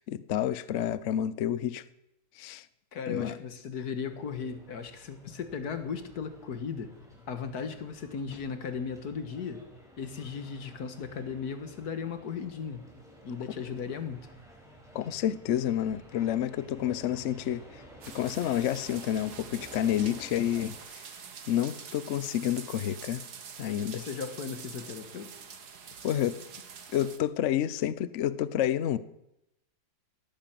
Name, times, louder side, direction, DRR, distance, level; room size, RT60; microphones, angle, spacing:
voice 1, 0.0-1.8 2.4-2.7 3.1-3.4 14.9-17.6 18.1-21.1 21.5-23.2 23.6-24.0 26.0-26.4 26.9-29.0, left 11 dB, 75° left, 16 dB, 0.6 m, -29 dB
voice 2, 2.9-6.9 7.3-9.6 10.0-12.8 13.2-14.3 23.9-25.3, left 6 dB, 55° left, 9 dB, 1.8 m, -36 dB
sound 1, 4.0-20.8, right 1 dB, ahead, 4.7 m, -52 dB
sound 2, 18.0-27.2, right 6 dB, 55° right, 1.8 m, -46 dB
18.0 x 10.5 x 7.6 m, 0.86 s
omnidirectional pair, 2.2 m